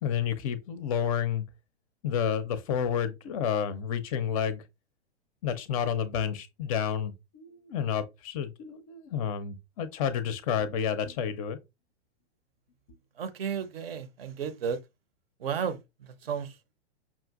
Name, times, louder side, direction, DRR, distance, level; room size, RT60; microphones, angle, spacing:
voice 1, 0.0-1.4 2.0-4.6 5.4-11.6, left 8 dB, 35° left, 0.5 m, -30 dB
voice 2, 13.2-14.8 15.4-15.8 16.3-16.5, right 7 dB, 60° right, 0.7 m, -32 dB
5.6 x 2.5 x 2.4 m
figure-of-eight pair, 105°, 34 cm